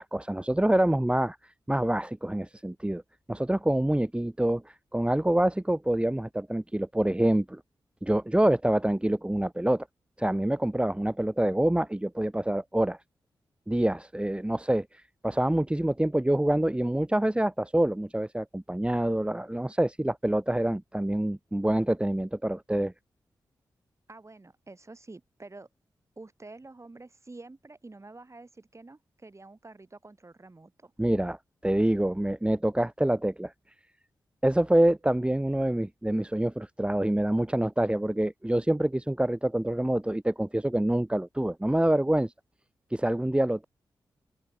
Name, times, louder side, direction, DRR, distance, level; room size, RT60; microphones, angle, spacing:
voice 1, 0.0-3.0 3.3-7.6 8.0-9.9 10.2-13.0 13.7-22.9 31.0-31.4 31.6-33.5 34.4-42.3 42.9-43.7, right 1 dB, 10° right, 1.8 m, -26 dB
voice 2, 24.1-25.7 26.2-30.9, right 2 dB, 35° right, 7.3 m, -48 dB
supercardioid pair, 45°, 9 cm